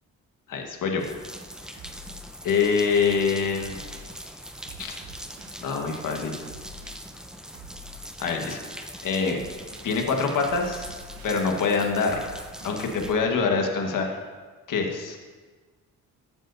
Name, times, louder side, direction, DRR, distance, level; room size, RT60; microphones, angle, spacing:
voice 1, 0.5-1.1 2.4-3.8 4.8-4.9 5.6-6.4 8.2-9.4 9.8-10.9 11.2-12.2 12.6-14.1 14.7-15.2, left 5 dB, 65° left, 2 dB, 1.5 m, -25 dB
sound 1, 1.0-13.1, equal, ahead, 0.6 m, -42 dB
sound 2, 1.8-2.7 3.6-4.1 4.6-5.6 6.5-6.9 7.5-8.5 9.3-9.9 10.4-11.4 12.1-13.2, right 1 dB, 85° right, 1.2 m, -46 dB
13.5 x 8.9 x 2.7 m, 1.4 s
cardioid pair, 95°, 34 cm